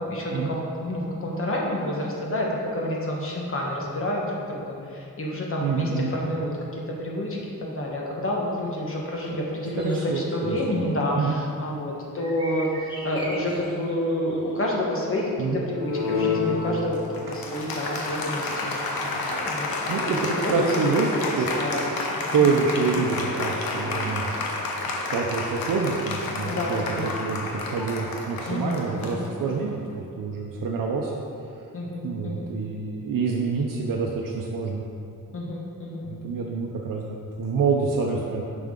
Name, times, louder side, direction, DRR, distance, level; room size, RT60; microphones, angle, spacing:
voice 1, 0.0-18.5 19.4-21.2 21.5-22.6 22.9-23.0 26.4-27.1 28.5-29.3 31.7-32.5 35.3-36.1, left 1 dB, 40° left, -2 dB, 1.3 m, -29 dB
voice 2, 5.6-6.1 9.3-9.4 9.7-10.8 11.1-11.4 15.4-15.6 19.9-21.1 21.4-21.5 22.3-24.4 24.9-31.1 32.0-34.8 36.0-38.4, right 5 dB, 65° right, -1 dB, 0.7 m, -27 dB
sound 1, 9.8-10.3 12.2-14.8, equal, 15° left, 1.2 m, -40 dB
Applause, 15.7-29.8, left 3 dB, 90° left, 1.0 m, -30 dB
9.1 x 6.0 x 3.8 m, 2.6 s
wide cardioid pair, 170°, 35 cm